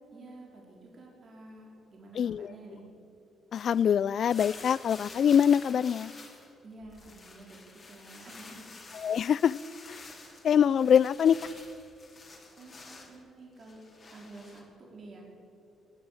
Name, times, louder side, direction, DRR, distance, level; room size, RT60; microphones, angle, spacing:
voice 1, 0.1-2.8 6.6-8.7 12.6-13.8 14.1-15.2, right 2 dB, 45° right, -2 dB, 4.2 m, -50 dB
voice 2, 2.2-2.5 3.5-6.1 8.9-9.6 9.9-10.0 10.4-11.4, left 8 dB, 60° left, 22 dB, 0.3 m, -24 dB
sound 1, 3.5-6.5 6.8-13.2 13.6-14.6, left 3 dB, 35° left, 2.9 m, -49 dB
18.0 x 8.8 x 8.5 m, 2.6 s
cardioid pair, 90°, 0 cm